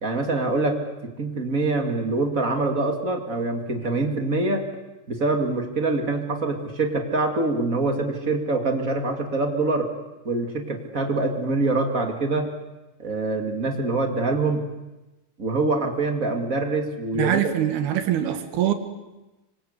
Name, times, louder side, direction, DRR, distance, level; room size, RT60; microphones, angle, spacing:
voice 1, 0.0-4.6 5.1-9.9 10.2-12.5 13.0-14.6 15.4-17.4, right 2 dB, 30° right, 4 dB, 1.7 m, -25 dB
voice 2, 17.2-18.7, right 11 dB, 65° right, 7 dB, 3.6 m, -23 dB
25.5 x 25.0 x 8.2 m, 1.0 s
omnidirectional pair, 5.1 m